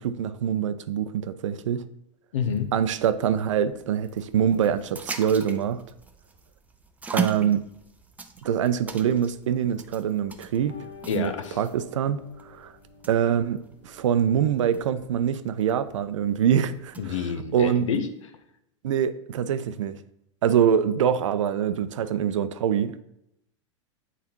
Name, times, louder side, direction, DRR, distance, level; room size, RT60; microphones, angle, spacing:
voice 1, 0.0-1.9 2.7-5.8 7.1-7.6 8.4-10.8 11.1-11.3 11.6-12.7 13.1-17.1 17.5-17.9 18.8-20.0 20.4-23.0, right 8 dB, 75° right, 12 dB, 0.5 m, -24 dB
voice 2, 2.3-2.7 11.1-11.6 17.0-18.1, left 7 dB, 80° left, 9 dB, 0.8 m, -28 dB
sound 1, 2.3-17.2, right 5 dB, 10° right, 0.5 m, -40 dB
sound 2, 10.5-18.2, left 5 dB, 45° left, 1.7 m, -50 dB
8.3 x 4.0 x 2.9 m, 0.80 s
hypercardioid pair, 100°, 16 cm